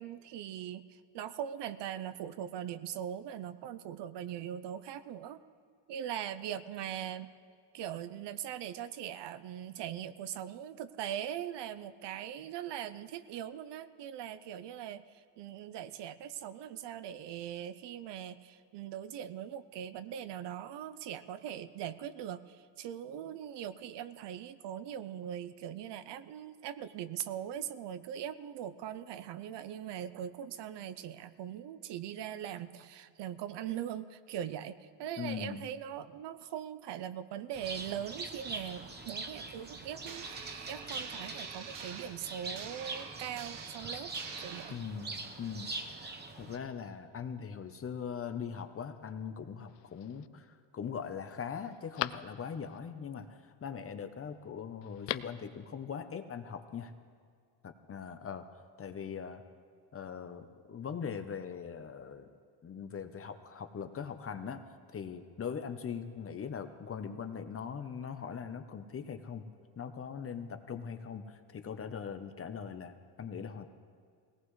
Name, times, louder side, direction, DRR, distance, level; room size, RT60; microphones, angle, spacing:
voice 1, 0.0-5.4 5.9-7.3 7.7-44.1 44.4-44.7, right 10 dB, 60° right, 14 dB, 0.7 m, -41 dB
voice 2, 35.2-35.7 44.7-46.1 46.4-56.9 57.6-58.5 58.8-59.4 59.9-62.3 62.6-64.6 64.9-69.4 69.8-73.7, left 7 dB, 30° left, 8 dB, 0.8 m, -41 dB
Bird, 37.5-46.6, right 3 dB, 20° right, 0.9 m, -43 dB
sound 1, 40.0-44.7, right 6 dB, 90° right, 1.5 m, -46 dB
Telephone, 49.7-50.3 50.8-50.9 51.3-52.8 54.8-55.5 55.7-55.8, left 16 dB, 60° left, 0.6 m, -40 dB
20.0 x 18.0 x 3.2 m, 2.2 s
cardioid pair, 130°, 48 cm